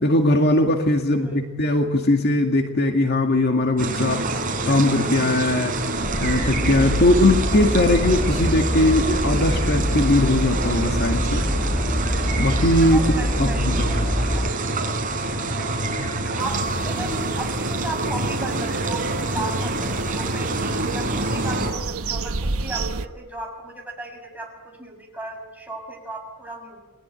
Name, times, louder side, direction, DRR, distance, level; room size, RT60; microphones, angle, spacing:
voice 1, 0.0-4.3 4.7-5.8 6.2-11.5 12.4-13.0 13.4-13.9, left 1 dB, 50° left, 4 dB, 2.1 m, -20 dB
voice 2, 1.1-1.5 12.9-14.5 16.4-26.8, right 1 dB, 5° right, 0 dB, 6.4 m, -35 dB
sound 1, 3.8-21.7, right 2 dB, 35° right, 5.2 m, -26 dB
sound 2, 6.0-14.5, equal, 10° left, 1.1 m, -25 dB
sound 3, 16.4-23.1, right 3 dB, 70° right, 1.1 m, -31 dB
29.5 x 21.0 x 9.1 m, 1.4 s
head